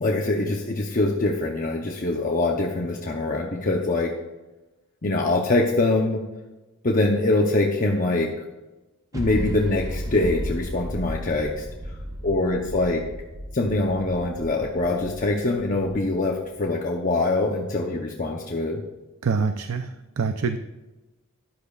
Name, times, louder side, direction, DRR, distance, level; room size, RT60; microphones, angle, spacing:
voice 1, 0.0-4.1 5.0-6.2 6.8-8.3 9.1-11.9 12.2-13.0 13.5-18.8, left 2 dB, 40° left, 0 dB, 0.7 m, -24 dB
sound 1, 9.1-16.7, equal, 15° right, 0.7 m, -35 dB
voice 2, 19.2-20.6, right 5 dB, 80° right, 8 dB, 0.5 m, -25 dB
13.0 x 10.5 x 2.4 m, 1.1 s
head